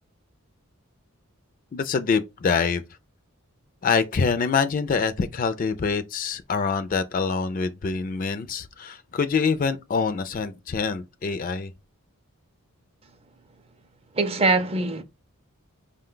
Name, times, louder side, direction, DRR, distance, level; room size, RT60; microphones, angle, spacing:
voice 1, 1.7-2.8 3.8-11.7, left 5 dB, 40° left, 0.3 m, -25 dB
voice 2, 14.2-15.0, right 3 dB, 25° right, 0.4 m, -22 dB
5.0 x 2.2 x 3.7 m
head